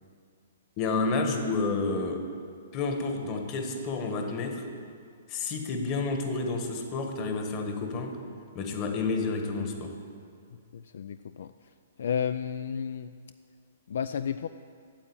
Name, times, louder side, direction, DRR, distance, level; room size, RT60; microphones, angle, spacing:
voice 1, 0.8-2.3 2.7-4.6 5.3-8.2 8.5-10.0, left 3 dB, 30° left, 4 dB, 1.3 m, -30 dB
voice 2, 10.7-11.5 12.0-13.1 13.9-14.5, left 7 dB, 70° left, 11 dB, 0.3 m, -32 dB
8.9 x 7.4 x 8.8 m, 2.2 s
hypercardioid pair, 145°, 0 cm